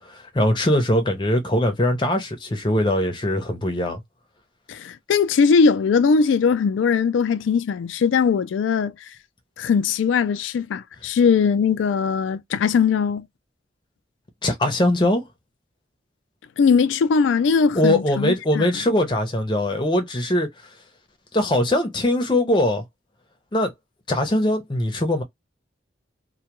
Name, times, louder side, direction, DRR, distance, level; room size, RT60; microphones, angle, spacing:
voice 1, 0.0-4.0 14.4-15.2 17.7-20.5 21.3-22.8 23.5-23.7 24.1-25.2, left 1 dB, 25° left, 0.6 m, -21 dB
voice 2, 4.7-9.0 9.6-13.3 16.6-18.7, left 5 dB, 85° left, 0.3 m, -20 dB
2.2 x 2.2 x 2.9 m
head